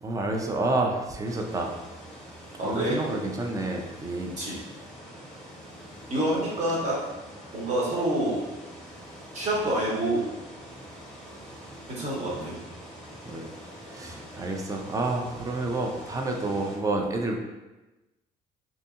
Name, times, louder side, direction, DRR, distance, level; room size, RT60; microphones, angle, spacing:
voice 1, 0.0-1.7 2.6-4.4 12.3-12.6 13.3-13.5 13.9-17.4, right 2 dB, 20° right, 2 dB, 0.4 m, -29 dB
sound 1, 1.2-16.8, equal, 5° left, 0.9 m, -45 dB
voice 2, 2.6-3.0 4.4-4.6 6.1-7.0 7.5-8.4 9.3-10.3 11.9-12.5 14.0-14.1, right 1 dB, 45° right, -5 dB, 1.0 m, -27 dB
2.7 x 2.6 x 2.3 m, 1.1 s
cardioid pair, 110°, 17 cm